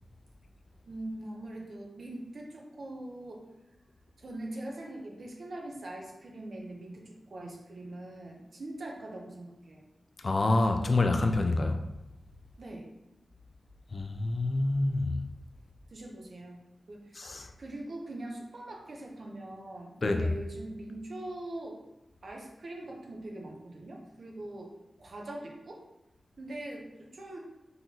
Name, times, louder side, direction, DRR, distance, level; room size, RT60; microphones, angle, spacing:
voice 1, 0.9-3.5 4.2-9.8 12.6-12.9 15.9-16.6 16.9-21.8 22.2-24.7 25.0-25.8 26.4-27.4, right 1 dB, 60° right, 0.8 m, -42 dB
voice 2, 10.2-11.8 13.9-15.2 17.2-17.5 20.0-20.3, left 2 dB, 45° left, 0.4 m, -27 dB
3.9 x 3.8 x 2.9 m
wide cardioid pair, 100°, 0 cm